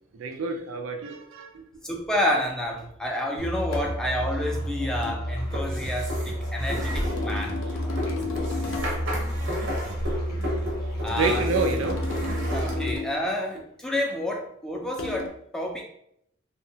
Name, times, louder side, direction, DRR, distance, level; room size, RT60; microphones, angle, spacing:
voice 1, 0.1-1.6 11.1-12.4, right 4 dB, 90° right, 5 dB, 0.4 m, -29 dB
voice 2, 1.8-8.0 11.0-11.5 12.5-15.8, left 1 dB, 5° left, -1 dB, 0.3 m, -29 dB
Musical instrument, 3.4-13.0, equal, 20° left, 0.8 m, -31 dB
sound 1, 3.7-4.0 5.0-5.2 6.7-9.1 11.2-13.2 15.0-15.3, left 4 dB, 80° left, 0.5 m, -34 dB
sound 2, 5.5-12.7, equal, 70° right, 0.8 m, -33 dB
2.8 x 2.2 x 2.6 m, 0.73 s
head